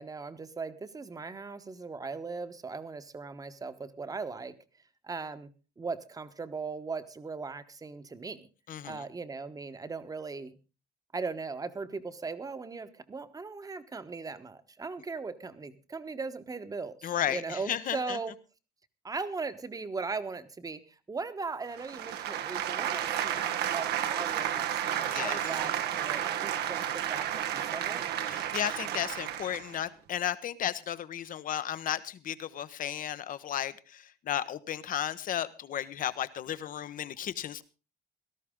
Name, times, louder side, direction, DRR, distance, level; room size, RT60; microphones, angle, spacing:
voice 1, 0.0-4.6 5.0-5.5 5.8-8.5 8.8-10.6 11.1-18.3 19.0-20.8 21.1-27.3 27.5-28.0, right 4 dB, 20° right, 10 dB, 1.2 m, -38 dB
voice 2, 8.7-9.1 17.0-18.2 25.0-25.6 28.2-37.6, left 10 dB, 55° left, 14 dB, 1.0 m, -34 dB
sound 1, 21.7-29.8, right 10 dB, 75° right, 1.3 m, -32 dB
17.5 x 13.0 x 3.7 m, 0.32 s
cardioid pair, 110°, 17 cm